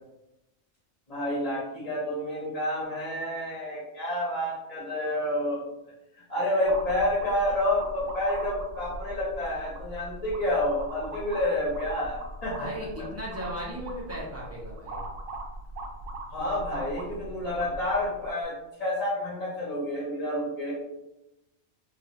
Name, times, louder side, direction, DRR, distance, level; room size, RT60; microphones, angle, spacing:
voice 1, 1.1-5.6 6.3-12.7 16.3-20.7, left 1 dB, 35° left, -8 dB, 1.0 m, -29 dB
sound 1, 6.7-18.4, right 2 dB, 85° right, 1.0 m, -40 dB
voice 2, 12.6-15.0, equal, 15° right, -5 dB, 0.6 m, -37 dB
2.6 x 2.4 x 4.1 m, 0.94 s
omnidirectional pair, 1.3 m